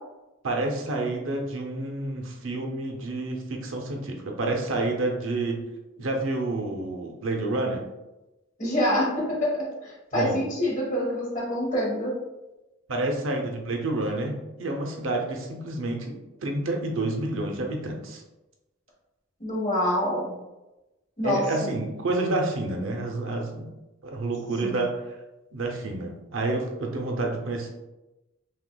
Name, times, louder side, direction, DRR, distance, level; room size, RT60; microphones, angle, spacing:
voice 1, 0.4-5.6 6.0-7.8 10.1-10.4 12.9-16.2 16.4-18.2 21.2-23.7 24.0-25.2 25.5-27.7, right 2 dB, 65° right, 2 dB, 0.6 m, -29 dB
voice 2, 8.6-12.1 19.4-20.3 21.2-21.4 24.6-24.8, left 1 dB, 35° left, -5 dB, 1.3 m, -26 dB
5.9 x 2.4 x 2.2 m, 1.0 s
head